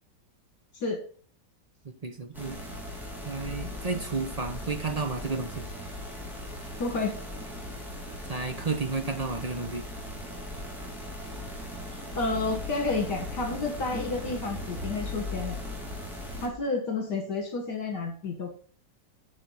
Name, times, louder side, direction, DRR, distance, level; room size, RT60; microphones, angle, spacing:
voice 1, 1.8-2.6 3.2-5.7 8.3-9.8, right 4 dB, 45° right, 6 dB, 0.5 m, -32 dB
sound 1, 2.3-16.5, left 1 dB, ahead, 2.5 m, -38 dB
voice 2, 6.8-7.1 12.2-15.6 16.4-18.5, left 3 dB, 65° left, 3 dB, 2.3 m, -30 dB
9.4 x 5.5 x 5.7 m, 0.43 s
omnidirectional pair, 2.0 m